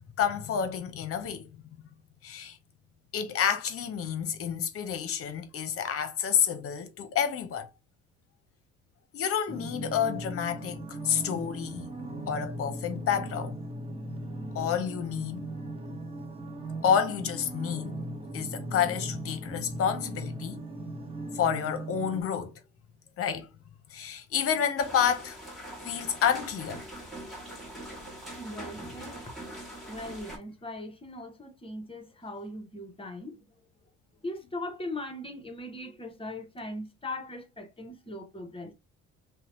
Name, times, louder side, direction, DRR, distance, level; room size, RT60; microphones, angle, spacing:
voice 1, 0.2-1.5 2.2-2.6 3.1-7.7 9.1-11.9 12.3-13.5 14.5-15.5 16.8-18.0 18.3-20.6 21.3-22.6 23.2-23.5 23.9-25.4 25.8-26.8, left 8 dB, 50° left, 0.7 m, -29 dB
sound 1, 9.5-22.2, right 1 dB, 20° right, 0.7 m, -38 dB
sound 2, 24.8-30.4, right 1 dB, ahead, 1.4 m, -43 dB
voice 2, 28.4-29.3 29.9-33.5 34.2-38.7, left 1 dB, 20° left, 0.9 m, -39 dB
2.7 x 2.1 x 2.9 m
supercardioid pair, 75°, 29 cm